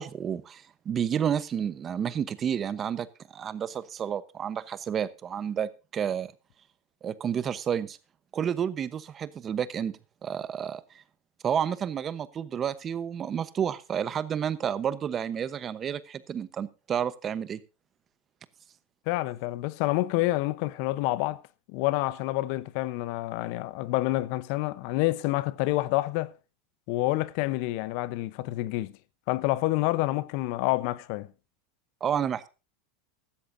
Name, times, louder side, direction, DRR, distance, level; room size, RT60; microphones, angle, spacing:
voice 1, 0.0-6.3 7.0-8.0 8.3-9.9 10.2-10.8 11.4-17.6 32.0-32.5, right 8 dB, 25° right, 1.0 m, -30 dB
voice 2, 19.1-21.4 21.7-26.3 26.9-28.9 29.3-31.3, left 18 dB, 55° left, 0.8 m, -28 dB
15.5 x 13.0 x 2.7 m
supercardioid pair, 145°, 0 cm